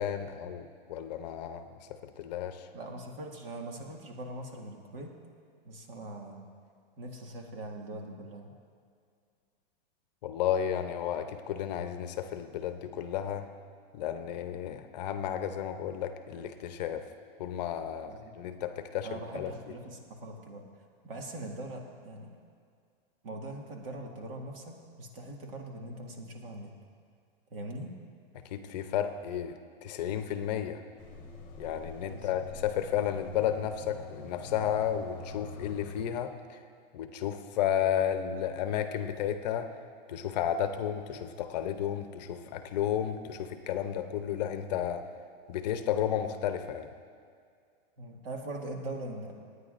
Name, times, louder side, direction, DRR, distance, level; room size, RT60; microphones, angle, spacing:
voice 1, 0.0-1.8 2.2-2.7 10.2-13.5 13.9-17.0 17.4-19.5 28.4-30.8 31.6-36.6 36.9-39.7 40.1-45.0 45.5-46.9, left 9 dB, 45° left, 8 dB, 0.7 m, -32 dB
voice 2, 2.7-5.2 5.6-6.4 7.0-8.5 18.1-18.4 19.0-20.7 21.0-22.3 23.2-26.7 27.5-28.0 32.1-32.4 33.9-34.5 48.0-49.4, right 1 dB, 70° right, 1 dB, 2.0 m, -42 dB
sound 1, 31.0-36.0, left 3 dB, 15° left, 1.4 m, -45 dB
27.5 x 9.5 x 2.5 m, 2.2 s
supercardioid pair, 160°, 29 cm